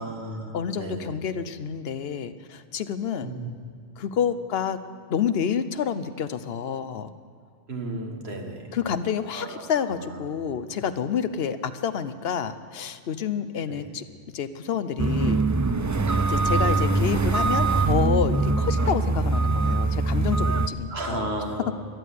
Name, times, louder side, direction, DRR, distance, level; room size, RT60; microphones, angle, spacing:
voice 1, 0.0-1.2 3.2-3.5 7.7-8.8 9.3-10.3 13.7-13.9 16.5-16.8 20.9-21.7, right 2 dB, 85° right, 2 dB, 2.0 m, -34 dB
voice 2, 0.5-3.3 4.0-4.8 5.1-7.1 8.7-14.0 14.3-15.4 16.3-21.3, left 7 dB, 75° left, 12 dB, 1.0 m, -28 dB
sound 1, 15.0-20.7, right 3 dB, 30° right, 0.3 m, -23 dB
13.5 x 11.0 x 8.4 m, 2.2 s
omnidirectional pair, 1.0 m